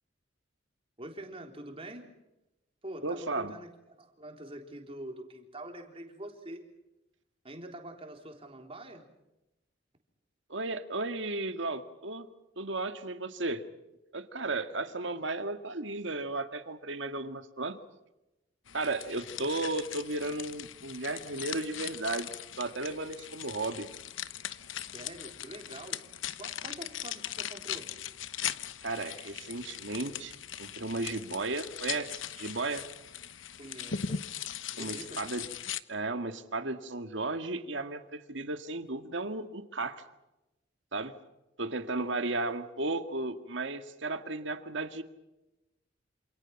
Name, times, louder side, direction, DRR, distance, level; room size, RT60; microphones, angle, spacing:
voice 1, 1.0-2.1 2.8-3.7 4.0-6.6 7.4-9.1 24.9-26.1 26.4-27.9 33.6-34.3 34.7-35.2, right 1 dB, 30° right, 3 dB, 3.8 m, -45 dB
voice 2, 3.0-3.5 10.5-12.3 12.6-13.6 14.1-17.8 18.7-22.3 22.6-23.9 28.8-30.3 30.6-32.8 34.8-35.5 35.9-40.0 40.9-41.1 41.6-45.0, right 2 dB, 70° right, 8 dB, 1.9 m, -34 dB
sound 1, 18.7-35.8, left 9 dB, 80° left, 1.0 m, -40 dB
28.0 x 27.5 x 6.0 m, 0.95 s
head